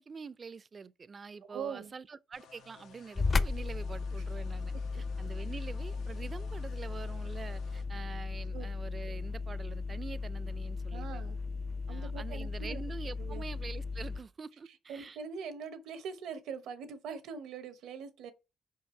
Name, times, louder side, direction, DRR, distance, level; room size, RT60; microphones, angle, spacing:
voice 1, 0.0-11.3 11.9-15.2, right 5 dB, 40° right, 0.5 m, -46 dB
voice 2, 1.4-1.9 4.7-5.0 8.5-8.7 10.9-11.4 11.9-12.8 13.2-13.4 14.9-18.3, right 6 dB, 85° right, 1.0 m, -42 dB
sound 1, 2.3-7.8, left 5 dB, 90° left, 1.0 m, -57 dB
sound 2, 3.1-14.2, left 4 dB, 40° left, 0.7 m, -36 dB
5.2 x 4.7 x 4.4 m
cardioid pair, 70°, 0 cm